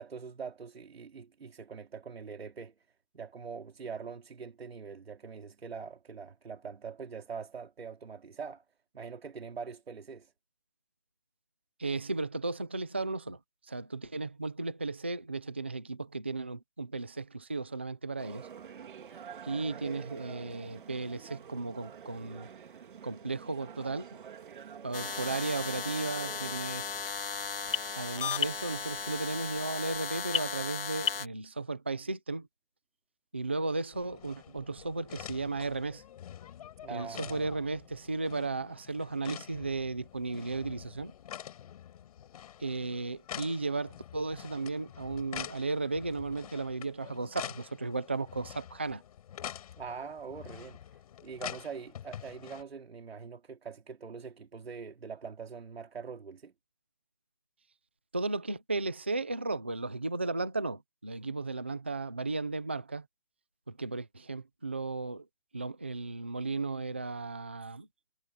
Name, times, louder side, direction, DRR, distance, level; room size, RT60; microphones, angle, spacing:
voice 1, 0.0-2.7 3.1-8.6 8.9-10.3 36.8-37.6 49.8-56.5, right 5 dB, 80° right, 3.2 m, -43 dB
voice 2, 11.8-13.4 13.7-18.5 19.4-22.5 23.0-24.2 24.8-27.1 27.9-32.5 33.3-36.0 36.9-41.1 42.6-49.0 58.1-63.1 63.7-65.3 65.5-67.9, right 3 dB, 10° right, 0.4 m, -35 dB
sound 1, 18.2-26.6, right 8 dB, 55° right, 2.2 m, -48 dB
sound 2, 24.9-31.3, left 6 dB, 65° left, 1.8 m, -35 dB
sound 3, 33.9-52.6, left 10 dB, 40° left, 6.0 m, -46 dB
hypercardioid pair, 165°, 30 cm